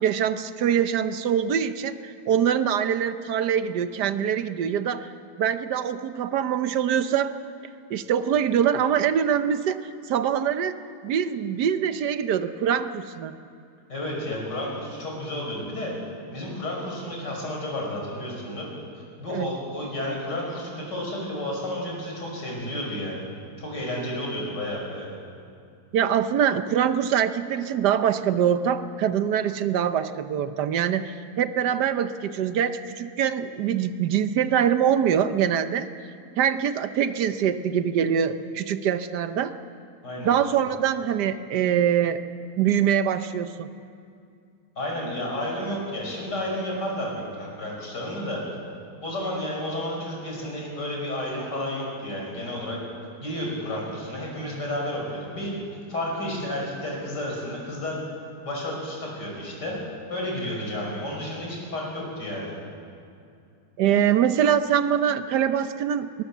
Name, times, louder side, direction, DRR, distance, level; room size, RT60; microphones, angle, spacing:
voice 1, 0.0-5.1 5.4-7.4 7.9-10.8 11.0-13.4 19.3-19.5 25.9-35.9 36.4-39.5 40.2-42.2 42.6-43.7 63.8-66.2, right 9 dB, 80° right, 11 dB, 1.4 m, -24 dB
voice 2, 13.9-15.9 16.3-18.7 19.2-23.2 23.6-25.1 40.0-40.3 44.8-48.4 49.0-52.8 53.2-55.5 55.9-58.0 58.4-59.8 60.1-62.5, left 1 dB, 85° left, -2 dB, 6.3 m, -31 dB
21.0 x 20.0 x 7.3 m, 2.5 s
omnidirectional pair, 1.8 m